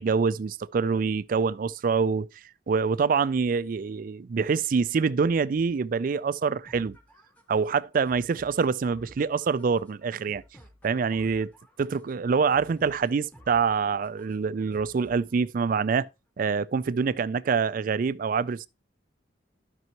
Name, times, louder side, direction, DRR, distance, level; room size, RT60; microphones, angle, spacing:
voice 1, 0.0-2.3 2.7-7.0 7.5-10.4 10.8-11.5 11.8-16.1 16.4-18.7, right 5 dB, 50° right, 0.3 m, -25 dB
sound 1, 6.6-15.6, equal, 10° left, 1.0 m, -54 dB
12.5 x 5.5 x 2.9 m
head